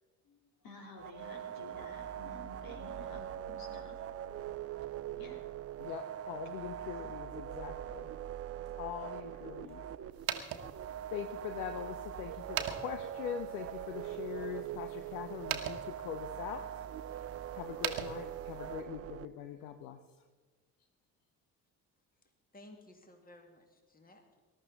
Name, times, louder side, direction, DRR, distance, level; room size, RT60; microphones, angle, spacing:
voice 1, 0.6-4.0 5.2-5.5 7.9-8.0 9.6-9.7, left 2 dB, 50° left, 1 dB, 3.6 m, -51 dB
sound 1, 1.0-19.3, right 11 dB, 30° right, 0.6 m, -42 dB
voice 2, 5.8-8.1 8.8-9.8 11.1-16.9 17.5-20.2, left 9 dB, 65° left, 8 dB, 0.9 m, -42 dB
sound 2, 10.1-18.8, right 10 dB, 50° right, 1.4 m, -43 dB
voice 3, 22.5-24.4, left 1 dB, 20° left, 4 dB, 2.3 m, -56 dB
20.0 x 12.0 x 4.0 m, 1.3 s
figure-of-eight pair, 50°, 47 cm